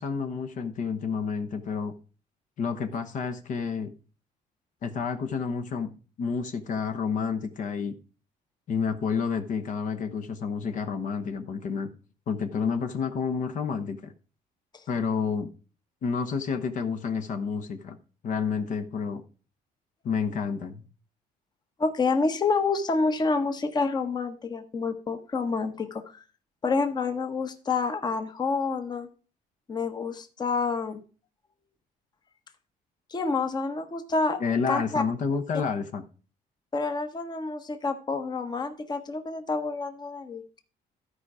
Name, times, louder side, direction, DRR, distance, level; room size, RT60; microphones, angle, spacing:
voice 1, 0.0-1.9 2.6-3.9 4.8-7.9 8.7-11.9 12.3-14.1 14.9-15.5 16.0-18.0 18.2-19.2 20.0-20.8 34.4-36.0, left 5 dB, 55° left, 1.0 m, -29 dB
voice 2, 21.8-26.2 26.6-29.1 29.7-31.0 33.1-34.4 34.7-35.0 36.7-40.4, left 4 dB, 25° left, 1.0 m, -28 dB
13.0 x 4.9 x 4.8 m
cardioid pair, 125°, 15 cm